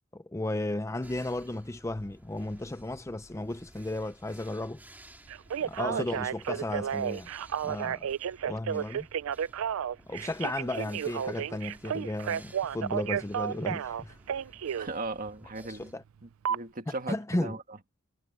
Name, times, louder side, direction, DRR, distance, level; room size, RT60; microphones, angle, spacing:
voice 1, 0.1-4.8 5.6-7.3 7.6-8.1 8.5-9.1 10.1-14.2 15.6-16.0 16.9-17.6, left 1 dB, 15° left, 0.5 m, -34 dB
sound 1, 1.0-15.9, right 1 dB, 10° right, 2.5 m, -55 dB
Telephone, 5.3-14.9 16.4-16.6, right 8 dB, 75° right, 0.4 m, -32 dB
voice 2, 14.8-15.9 16.2-17.6, right 2 dB, 40° right, 1.6 m, -38 dB
head